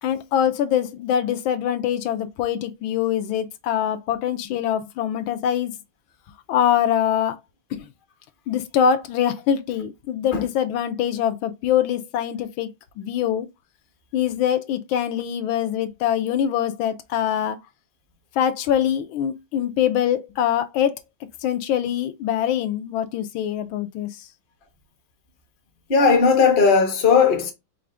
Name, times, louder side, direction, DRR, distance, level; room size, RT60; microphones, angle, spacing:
voice 1, 0.0-5.7 6.5-7.4 7.7-7.9 8.5-12.7 13.0-13.5 14.1-17.6 18.4-21.0 21.4-24.2, left 9 dB, 80° left, 1.4 m, -23 dB
voice 2, 25.9-27.5, left 5 dB, 40° left, 0.8 m, -17 dB
4.8 x 2.5 x 3.3 m
omnidirectional pair, 2.2 m